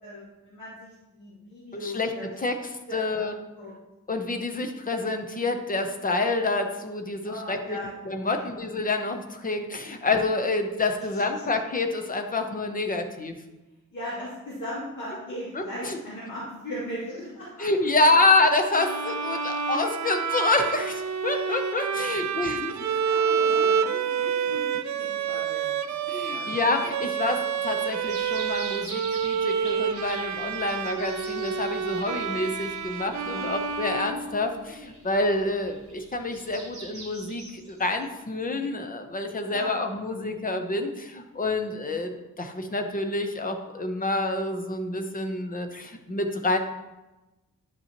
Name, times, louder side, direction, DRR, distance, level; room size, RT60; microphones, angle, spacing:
voice 1, 0.0-2.3 2.9-3.7 7.2-8.5 11.1-11.2 13.9-18.2 18.6-19.4 21.9-22.3 22.8-26.5 33.2-33.5 39.5-39.7, equal, 70° left, -10 dB, 2.5 m, -39 dB
voice 2, 2.9-3.4 4.1-7.8 8.1-13.4 15.5-16.0 17.6-22.7 23.6-24.6 26.1-42.1 42.4-46.6, left 2 dB, 25° left, 6 dB, 0.6 m, -27 dB
Bowed string instrument, 18.7-34.8, right 7 dB, 65° right, 0.4 m, -28 dB
sound 1, 28.0-38.2, right 2 dB, 20° right, 2.5 m, -45 dB
10.5 x 5.4 x 2.9 m, 1.1 s
wide cardioid pair, 180°, 31 cm